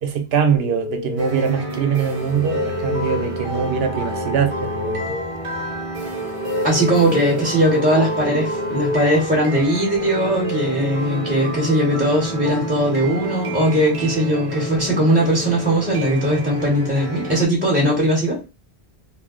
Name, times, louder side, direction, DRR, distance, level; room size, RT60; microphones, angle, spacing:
voice 1, 0.0-5.2, right 6 dB, 70° right, 0.8 m, -22 dB
sound 1, 0.6-10.2, left 4 dB, 60° left, 0.6 m, -33 dB
sound 2, 1.2-17.5, right 2 dB, 40° right, 0.6 m, -28 dB
voice 2, 6.6-18.4, equal, 10° right, 1.0 m, -19 dB
2.6 x 2.0 x 3.7 m
omnidirectional pair, 1.1 m